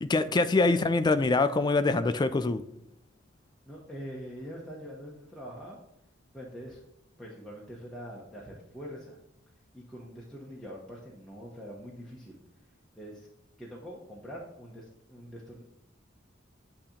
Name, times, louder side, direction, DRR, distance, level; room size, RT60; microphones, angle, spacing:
voice 1, 0.0-2.6, left 3 dB, 20° left, 11 dB, 0.3 m, -24 dB
voice 2, 3.6-5.8 6.3-6.8 7.2-9.2 9.7-12.4 12.9-13.3 13.6-15.6, equal, 5° left, -5 dB, 0.9 m, -44 dB
8.5 x 2.9 x 5.0 m, 0.83 s
head